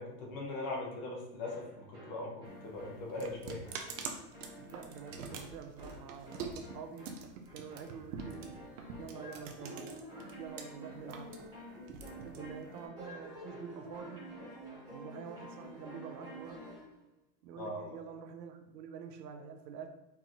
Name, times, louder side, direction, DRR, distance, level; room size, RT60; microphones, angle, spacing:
voice 1, 0.0-3.6 17.6-17.8, left 2 dB, 30° left, -1 dB, 0.6 m, -40 dB
sound 1, 1.5-16.9, right 1 dB, 10° right, 0.9 m, -50 dB
sound 2, 2.4-10.6 10.9-12.9, right 5 dB, 50° right, 0.6 m, -45 dB
voice 2, 4.7-7.1 7.5-8.6 8.9-10.0 10.3-11.4 12.2-14.2 14.9-16.7 17.4-19.9, right 6 dB, 90° right, 7 dB, 0.8 m, -47 dB
4.6 x 3.7 x 3.0 m, 0.95 s
supercardioid pair, 175°, 48 cm